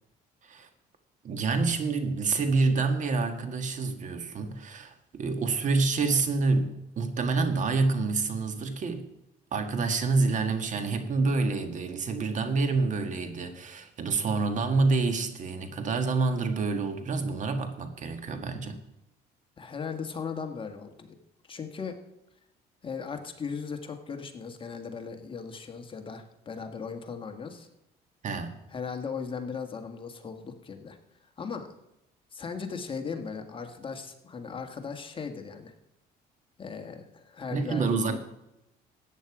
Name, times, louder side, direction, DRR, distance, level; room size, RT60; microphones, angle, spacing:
voice 1, 1.2-9.1 9.5-18.8 28.2-28.6 37.5-38.2, right 3 dB, 45° right, 8 dB, 1.7 m, -27 dB
voice 2, 19.6-21.1 21.5-22.0 22.8-27.7 28.7-31.0 31.4-31.7 32.3-35.7 36.6-38.2, left 5 dB, 30° left, 5 dB, 1.6 m, -37 dB
14.0 x 9.3 x 4.9 m, 0.86 s
cardioid pair, 110°, 17 cm